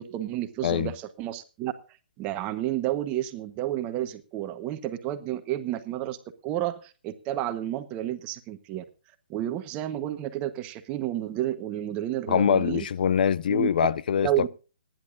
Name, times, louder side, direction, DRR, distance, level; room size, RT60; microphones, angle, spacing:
voice 1, 0.0-1.7 2.2-6.2 6.4-8.8 9.3-12.9 13.5-13.7 14.2-14.5, right 13 dB, 25° right, 1.2 m, -31 dB
voice 2, 12.3-14.5, left 8 dB, 60° left, 0.8 m, -24 dB
26.5 x 10.5 x 2.5 m
hypercardioid pair, 150°, 5 cm